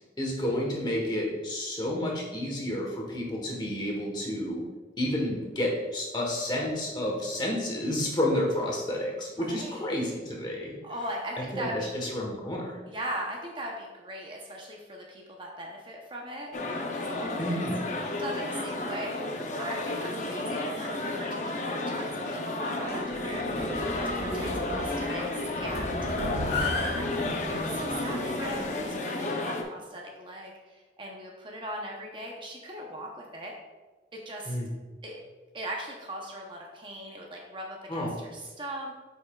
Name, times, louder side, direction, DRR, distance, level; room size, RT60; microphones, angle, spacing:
voice 1, 0.2-4.6 5.0-10.7 11.5-12.8 17.4-17.8 34.4-34.7 37.9-38.1, left 1 dB, 25° left, -1 dB, 1.1 m, -30 dB
voice 2, 9.4-9.9 10.8-11.9 12.9-16.5 16.9-17.6 18.1-19.2 19.6-26.0 27.0-33.5 34.1-34.6 35.0-35.2 35.5-39.0, right 1 dB, 30° right, -1 dB, 0.7 m, -39 dB
sound 1, 16.5-29.6, left 2 dB, 45° left, 0.6 m, -32 dB
sound 2, 22.7-29.0, left 1 dB, 85° left, 1.5 m, -35 dB
8.3 x 5.6 x 2.3 m, 1.3 s
head